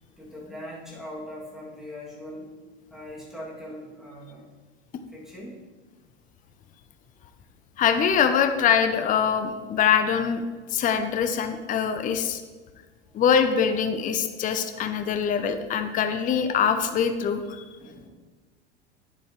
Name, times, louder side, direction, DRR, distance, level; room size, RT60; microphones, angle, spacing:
voice 1, 0.2-2.5 2.9-4.5 5.1-5.6 17.8-18.1, left 1 dB, ahead, -6 dB, 2.5 m, -40 dB
voice 2, 7.8-10.4 10.7-12.4 13.1-17.6, left 7 dB, 25° left, 9 dB, 0.6 m, -23 dB
9.5 x 7.6 x 3.2 m, 1.3 s
hypercardioid pair, 85°, 34 cm